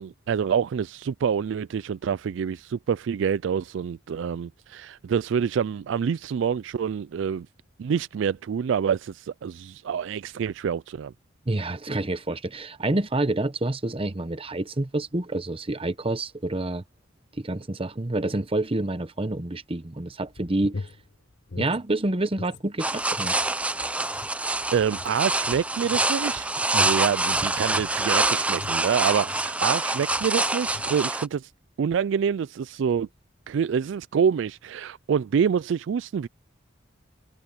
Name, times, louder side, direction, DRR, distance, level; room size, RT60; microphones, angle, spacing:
voice 1, 0.0-7.5 7.8-11.1 24.7-31.5 31.8-33.1 33.5-36.3, right 7 dB, 65° right, 0.3 m, -26 dB
voice 2, 11.5-16.8 17.4-20.9 21.6-23.4, right 2 dB, 30° right, 1.0 m, -28 dB
sound 1, 20.3-22.6 22.9-29.6 30.0-30.3 30.6-31.0, left 3 dB, 55° left, 0.7 m, -42 dB
sound 2, 22.8-31.3, right 2 dB, 5° right, 0.5 m, -26 dB
head